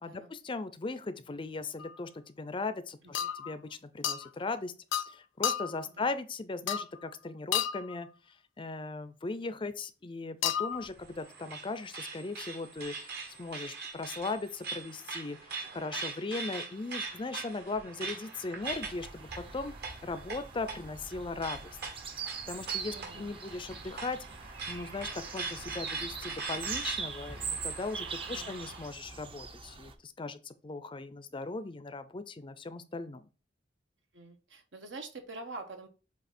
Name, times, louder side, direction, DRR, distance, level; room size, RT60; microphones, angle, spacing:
voice 1, 0.0-4.7 5.1-8.1 8.6-15.4 15.7-19.7 20.0-21.8 22.5-24.2 24.7-33.3, left 3 dB, 25° left, 0.5 m, -38 dB
sound 1, 1.8-2.0 3.1-3.5 4.0-4.3 4.9-5.1 5.4-5.8 6.7-7.0 7.5-7.9 10.4-10.9, left 9 dB, 85° left, 0.4 m, -32 dB
voice 2, 5.8-6.1 22.8-23.3 28.2-28.5 34.1-35.9, right 2 dB, 75° right, 1.2 m, -46 dB
sound 2, 10.7-28.9, right 4 dB, 60° right, 1.6 m, -42 dB
sound 3, 18.6-29.9, right 5 dB, 30° right, 0.6 m, -42 dB
7.8 x 2.8 x 4.2 m
head